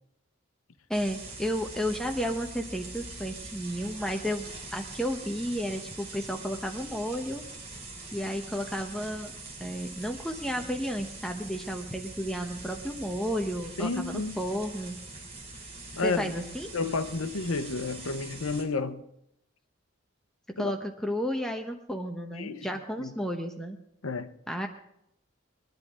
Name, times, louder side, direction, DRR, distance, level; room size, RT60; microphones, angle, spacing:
voice 1, 0.9-7.4 8.1-9.3 9.6-14.9 16.0-16.7 20.6-23.8 24.5-24.7, equal, 5° left, 0.9 m, -32 dB
sound 1, 0.9-18.6, right 2 dB, 30° right, 3.1 m, -43 dB
voice 2, 13.8-14.4 15.9-16.3 16.7-19.0 20.6-20.7 22.4-22.7 23.0-23.1 24.0-24.3, left 3 dB, 85° left, 0.8 m, -31 dB
22.0 x 10.5 x 3.7 m
head